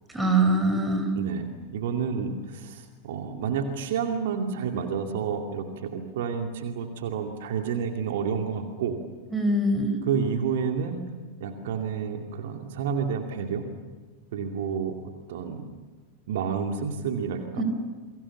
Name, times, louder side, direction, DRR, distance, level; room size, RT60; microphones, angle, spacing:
voice 1, 0.1-1.1 9.3-10.0 17.6-17.7, right 2 dB, 5° right, 5 dB, 5.2 m, -23 dB
voice 2, 1.1-1.5 1.7-8.9 10.0-11.0 11.4-13.6 14.3-15.7 16.3-17.6, right 6 dB, 55° right, 4 dB, 2.5 m, -30 dB
30.0 x 23.0 x 7.3 m, 1.4 s
figure-of-eight pair, 90°, 0 cm